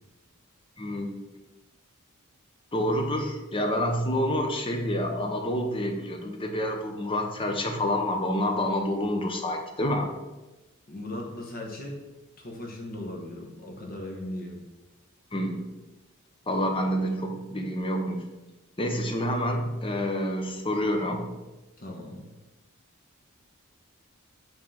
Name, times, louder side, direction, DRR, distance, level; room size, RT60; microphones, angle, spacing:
voice 1, 0.8-1.2 2.7-10.1 15.3-15.7 16.5-18.3 18.8-21.4, equal, 25° left, 3 dB, 0.8 m, -28 dB
voice 2, 10.9-12.0 12.4-14.6 21.8-22.3, left 1 dB, 45° left, 1 dB, 1.1 m, -38 dB
5.7 x 3.8 x 5.4 m, 1.1 s
head